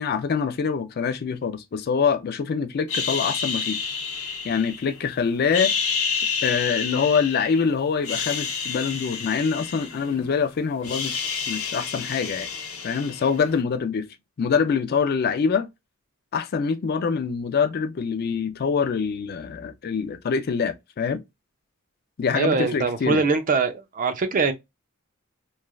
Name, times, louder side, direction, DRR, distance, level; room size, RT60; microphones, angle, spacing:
voice 1, 0.0-3.8 4.4-5.7 6.4-12.5 12.8-14.1 14.4-15.7 16.3-21.2 22.2-23.3, left 6 dB, 45° left, 0.4 m, -25 dB
sound 1, 2.9-5.0 5.4-7.6 8.0-10.4 10.6-13.5, left 6 dB, 75° left, 0.8 m, -29 dB
voice 2, 22.3-24.5, right 4 dB, 40° right, 0.5 m, -23 dB
3.1 x 2.4 x 2.2 m
head